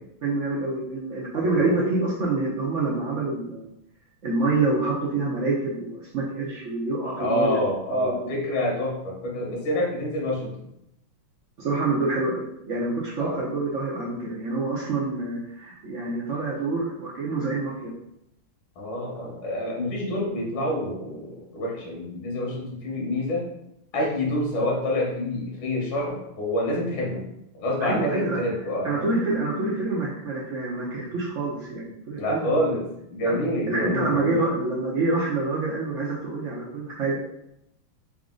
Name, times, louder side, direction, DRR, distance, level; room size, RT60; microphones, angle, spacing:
voice 1, 0.2-3.7 4.2-8.3 11.6-17.9 27.8-28.4 28.8-32.6 33.2-33.4 33.7-37.2, right 3 dB, 75° right, -4 dB, 0.7 m, -27 dB
voice 2, 1.5-1.8 7.2-10.7 13.2-13.4 18.8-23.4 23.9-27.2 27.6-29.1 32.1-34.4, left 1 dB, 80° left, -2 dB, 1.9 m, -27 dB
4.0 x 2.5 x 3.7 m, 0.80 s
omnidirectional pair, 2.2 m